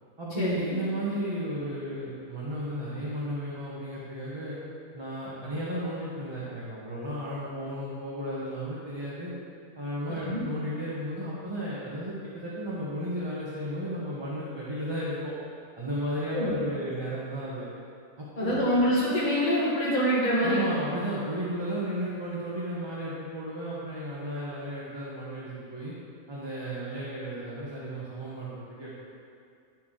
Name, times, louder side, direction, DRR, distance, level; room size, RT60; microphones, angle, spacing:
voice 1, 0.2-4.6 4.9-9.3 9.7-15.3 15.8-17.7 18.2-18.6 20.4-25.9 26.3-28.9, equal, 20° right, -8 dB, 0.9 m, -34 dB
voice 2, 18.4-20.6, equal, 30° left, -8 dB, 1.4 m, -25 dB
10.5 x 4.5 x 3.7 m, 2.4 s
omnidirectional pair, 1.6 m